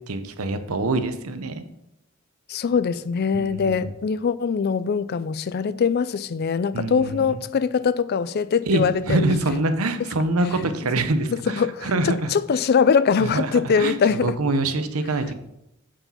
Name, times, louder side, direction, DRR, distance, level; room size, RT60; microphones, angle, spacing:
voice 1, 0.1-1.6 3.3-3.9 6.7-7.4 8.7-12.3 13.2-13.9 14.2-15.3, right 2 dB, 85° right, 0.8 m, -25 dB
voice 2, 2.5-9.2 11.6-14.3, left 6 dB, 45° left, 0.4 m, -22 dB
8.6 x 4.9 x 5.6 m
head